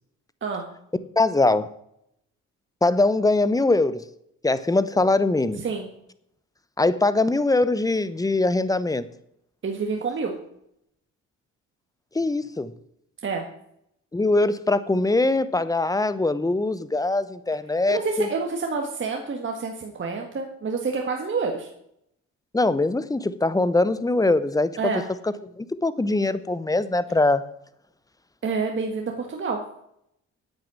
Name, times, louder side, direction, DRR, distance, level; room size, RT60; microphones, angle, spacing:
voice 1, 1.2-1.7 2.8-4.0 4.4-5.6 6.8-9.0 12.1-12.7 14.1-18.3 22.5-24.9 25.2-27.4, left 2 dB, 10° left, 15 dB, 0.8 m, -22 dB
voice 2, 9.6-10.3 13.2-13.4 17.9-21.7 24.8-25.1 28.4-29.6, right 4 dB, 40° right, 2 dB, 1.7 m, -28 dB
9.2 x 8.6 x 7.5 m, 0.77 s
cardioid pair, 90°, 30 cm